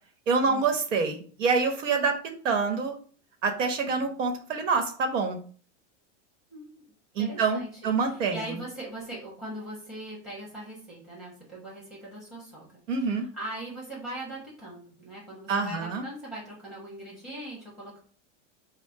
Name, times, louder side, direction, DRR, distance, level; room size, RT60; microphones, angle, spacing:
voice 1, 0.3-2.2 2.4-3.0 3.4-5.4 7.1-8.6 12.9-13.3 15.5-16.0, right 4 dB, 85° right, 5 dB, 1.2 m, -26 dB
voice 2, 7.2-7.7 8.0-18.0, right 1 dB, ahead, -4 dB, 1.1 m, -40 dB
4.6 x 2.2 x 4.7 m, 0.43 s
supercardioid pair, 175°, 36 cm